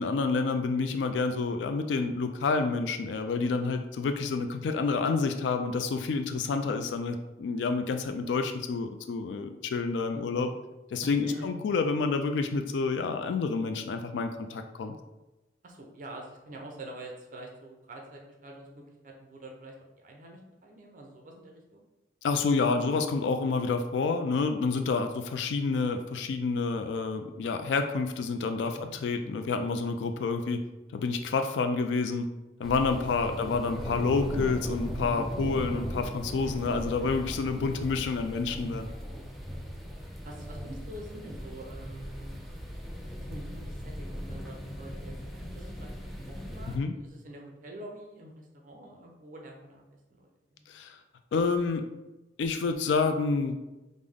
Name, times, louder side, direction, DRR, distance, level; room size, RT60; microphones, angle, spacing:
voice 1, 0.0-10.5 10.9-15.0 22.2-30.6 30.9-32.3 32.6-38.9 46.7-46.9 50.7-51.0 51.3-51.9 52.4-53.6, left 4 dB, 90° left, 7 dB, 0.3 m, -29 dB
voice 2, 10.1-10.5 11.0-11.6 15.6-21.9 28.6-28.9 33.3-33.6 36.4-36.7 39.1-39.5 40.2-42.6 43.0-50.7, right 1 dB, 50° right, 1 dB, 0.6 m, -46 dB
sound 1, 32.6-46.8, equal, ahead, 0.4 m, -38 dB
5.1 x 2.1 x 3.5 m, 1.0 s
head